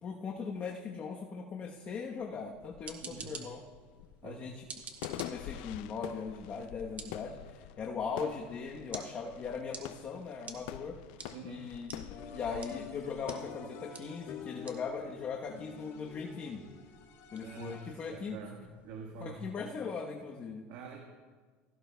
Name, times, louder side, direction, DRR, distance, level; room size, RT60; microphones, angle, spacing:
voice 1, 0.0-3.6 4.2-4.7 5.1-11.0 11.4-16.6 17.3-18.4 19.2-20.6, left 5 dB, 35° left, 1 dB, 1.1 m, -39 dB
sound 1, 1.6-1.7 2.0-13.5, left 13 dB, 80° left, 0.4 m, -46 dB
sound 2, 2.6-19.4, right 5 dB, 30° right, 1.6 m, -52 dB
voice 2, 3.0-3.4 4.2-4.4 11.3-11.7 17.4-17.8 18.1-19.5 20.7-21.0, right 5 dB, 70° right, 0 dB, 1.5 m, -46 dB
sound 3, 12.1-18.2, left 7 dB, 60° left, 1.3 m, -48 dB
17.0 x 15.0 x 2.3 m, 1.5 s
supercardioid pair, 130°, 5 cm